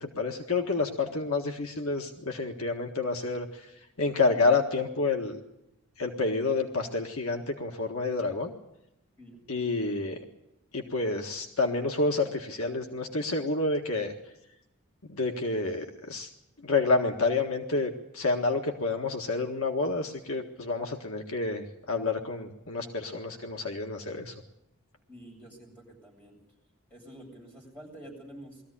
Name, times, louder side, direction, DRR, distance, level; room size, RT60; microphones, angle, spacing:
voice 1, 0.0-3.5 4.0-5.4 6.0-8.5 9.5-10.2 10.7-14.1 15.2-16.3 16.6-24.3, left 3 dB, 70° left, 3 dB, 1.7 m, -29 dB
voice 2, 25.1-26.3 26.9-28.6, right 1 dB, 10° left, -3 dB, 7.9 m, -48 dB
21.0 x 14.5 x 10.0 m, 0.86 s
head